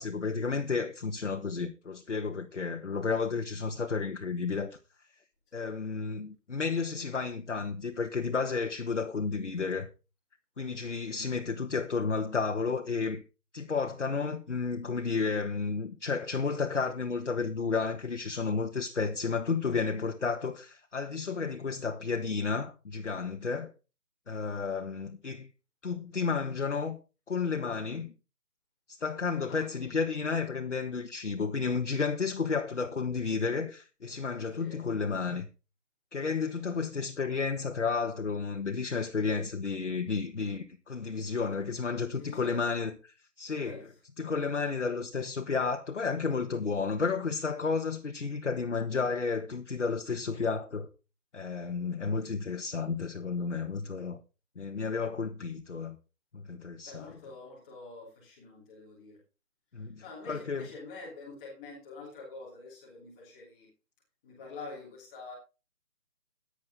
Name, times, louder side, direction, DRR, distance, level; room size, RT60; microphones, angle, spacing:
voice 1, 0.0-4.8 5.5-9.9 10.6-13.2 13.5-23.7 24.3-25.5 25.8-27.0 27.3-28.1 28.9-35.5 36.1-50.9 51.3-54.2 54.5-56.0 56.3-57.1 59.7-60.7, left 5 dB, 50° left, 1.5 m, -32 dB
voice 2, 42.1-42.6 43.6-43.8 56.8-59.2 60.0-63.7 64.2-65.3, left 3 dB, 5° left, 1.6 m, -46 dB
14.5 x 10.0 x 3.7 m
figure-of-eight pair, 175°, 47 cm